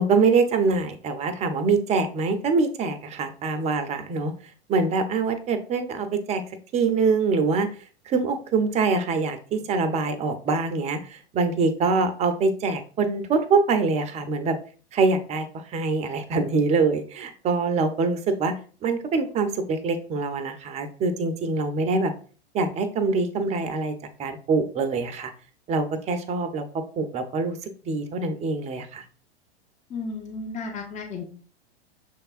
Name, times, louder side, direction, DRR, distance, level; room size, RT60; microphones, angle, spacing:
voice 1, 0.0-4.3 4.7-6.4 6.7-7.7 8.1-14.5 14.9-18.5 18.8-22.1 22.5-23.9 24.2-25.3 25.7-26.7 27.0-29.0, right 4 dB, 20° right, 9 dB, 0.6 m, -24 dB
voice 2, 29.9-31.2, left 3 dB, 20° left, 3 dB, 0.8 m, -33 dB
6.4 x 3.3 x 2.4 m, 0.41 s
hypercardioid pair, 120°, 33 cm